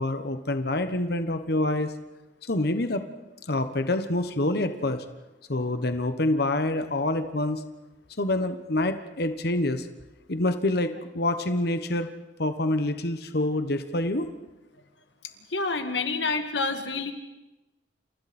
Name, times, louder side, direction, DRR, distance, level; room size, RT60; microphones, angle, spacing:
voice 1, 0.0-1.9 2.5-3.0 3.5-5.0 5.5-7.6 8.2-9.9 10.3-12.1 12.4-14.3, left 1 dB, 60° left, 8 dB, 1.3 m, -26 dB
voice 2, 15.5-17.1, left 3 dB, 85° left, 6 dB, 2.2 m, -28 dB
29.0 x 28.0 x 4.4 m, 1.0 s
head